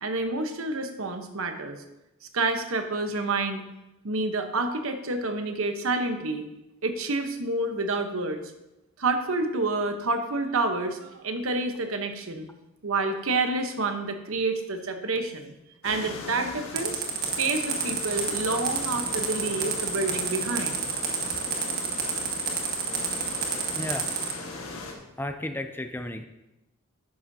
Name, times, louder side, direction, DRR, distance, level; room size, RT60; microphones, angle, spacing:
voice 1, 0.0-1.8 2.3-3.6 4.0-6.5 6.8-8.4 9.0-12.5 12.8-15.5 15.8-17.0 17.4-20.8, right 3 dB, 70° right, 6 dB, 1.0 m, -28 dB
sound 1, 15.8-24.9, left 2 dB, 75° left, 1.6 m, -39 dB
sound 2, 16.8-24.3, right 6 dB, 45° right, 1.5 m, -29 dB
voice 2, 22.8-23.2 23.7-24.1 25.2-26.2, left 1 dB, 10° left, 7 dB, 0.4 m, -34 dB
11.5 x 10.0 x 2.8 m, 0.94 s
head